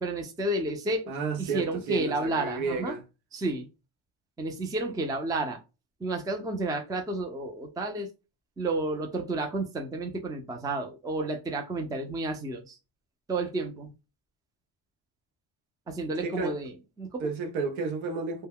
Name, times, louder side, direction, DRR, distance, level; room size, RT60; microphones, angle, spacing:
voice 1, 0.0-2.9 3.3-3.7 4.4-5.6 6.0-8.1 8.6-12.8 13.3-13.9 15.9-17.3, right 2 dB, 10° right, 0.4 m, -31 dB
voice 2, 1.1-3.0 16.2-16.6 17.2-18.5, right 4 dB, 75° right, 0.8 m, -31 dB
2.1 x 2.1 x 3.5 m
cardioid pair, 100°, 48 cm